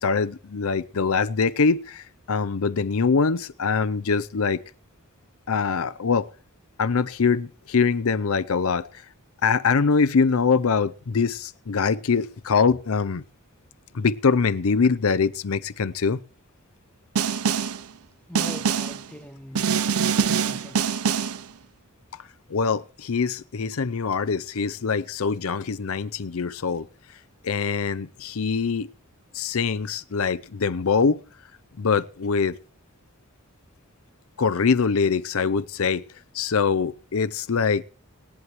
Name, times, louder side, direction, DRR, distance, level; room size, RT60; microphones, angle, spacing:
voice 1, 0.0-4.6 5.5-6.3 6.8-8.9 9.4-13.2 13.9-16.2 22.5-26.9 27.4-28.9 29.3-31.2 31.8-32.6 34.4-36.0 36.3-37.8, left 5 dB, 65° left, 0.6 m, -23 dB
Snare drum, 17.2-17.8 18.4-19.0 19.6-21.4, right 6 dB, 75° right, 0.6 m, -24 dB
voice 2, 18.3-19.9 20.2-20.8, left 1 dB, 5° left, 0.8 m, -42 dB
19.0 x 11.0 x 3.1 m
head